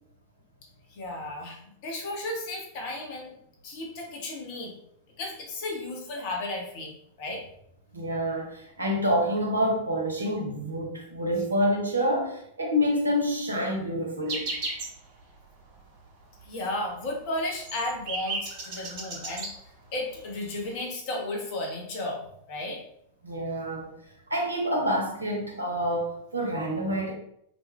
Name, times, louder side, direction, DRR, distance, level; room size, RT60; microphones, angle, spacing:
voice 1, 0.9-3.3 3.6-4.7 5.2-7.4 16.4-19.5 19.9-22.8, left 2 dB, 45° left, 0 dB, 0.8 m, -34 dB
voice 2, 7.9-14.5 23.2-23.9 24.3-27.1, equal, 80° right, -1 dB, 0.8 m, -27 dB
sound 1, 14.3-15.0 15.3-15.4 15.7-16.1 16.4-16.5 16.8-19.6 20.3-20.4 20.6-20.8, right 3 dB, 45° right, 0.7 m, -34 dB
2.6 x 2.3 x 3.1 m, 0.73 s
figure-of-eight pair, 90°, 0 cm